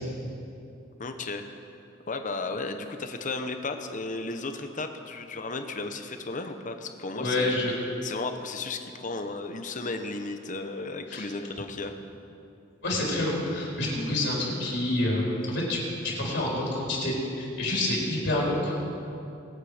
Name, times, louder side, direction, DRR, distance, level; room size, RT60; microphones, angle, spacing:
voice 1, 1.0-1.4 2.1-7.6 8.0-12.0, left 3 dB, 40° left, 7 dB, 1.0 m, -34 dB
voice 2, 7.2-7.7 11.1-11.3 12.8-18.7, left 1 dB, 65° left, -4 dB, 4.0 m, -28 dB
24.0 x 8.3 x 5.1 m, 2.8 s
head